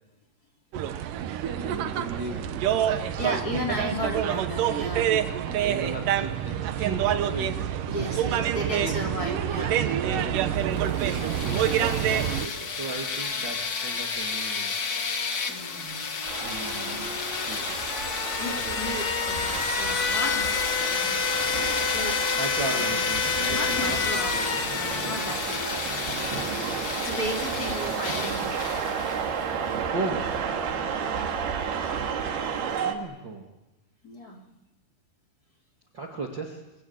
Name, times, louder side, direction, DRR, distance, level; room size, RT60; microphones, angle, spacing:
sound 1, 0.7-12.5, right 10 dB, 65° right, 2.5 m, -27 dB
voice 1, 0.8-3.5 4.0-4.1 5.4-7.8 8.2-8.9 9.9-14.7 16.4-17.9 18.4-19.0 22.1-24.9 27.4-28.0 29.9-30.4 32.7-33.5 35.9-36.7, right 3 dB, 35° right, 1 dB, 2.4 m, -37 dB
voice 2, 3.2-5.1 7.9-9.9 15.5-16.1 16.6-17.0 18.4-22.2 22.6-23.0 23.5-26.1 27.0-28.6 29.8-30.0 30.6-31.0 34.0-34.4, left 1 dB, 25° left, 2 dB, 4.2 m, -35 dB
sound 2, 10.8-29.4, left 5 dB, 70° left, 0.8 m, -29 dB
sound 3, 16.3-33.0, right 7 dB, 85° right, 4.0 m, -32 dB
25.5 x 25.0 x 8.7 m, 1.0 s
omnidirectional pair, 4.4 m